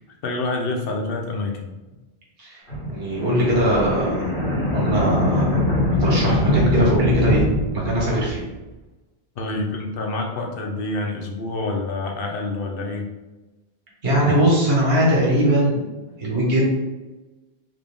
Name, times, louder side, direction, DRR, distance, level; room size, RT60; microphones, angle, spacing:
voice 1, 0.2-1.7 9.4-13.1, left 2 dB, 65° left, 1 dB, 0.7 m, -27 dB
sound 1, 2.7-8.5, left 1 dB, 90° left, 1.6 m, -23 dB
voice 2, 2.9-4.2 4.7-5.6 6.0-7.4 7.7-8.4 14.0-15.8 16.2-16.7, equal, 65° right, -4 dB, 1.4 m, -20 dB
3.6 x 2.4 x 3.5 m, 1.1 s
omnidirectional pair, 1.1 m